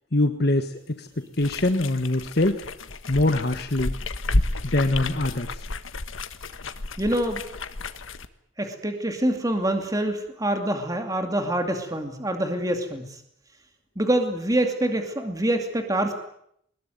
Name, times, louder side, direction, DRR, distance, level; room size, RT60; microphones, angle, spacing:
voice 1, 0.1-1.1 1.4-2.6 3.1-3.9 4.6-5.6, left 2 dB, 50° left, 7 dB, 1.4 m, -23 dB
sound 1, 1.3-8.3, left 2 dB, 85° left, 1.4 m, -31 dB
voice 2, 7.0-7.4 8.6-13.0 14.0-16.1, right 1 dB, 15° right, 5 dB, 2.5 m, -25 dB
22.0 x 21.0 x 9.4 m, 0.72 s
head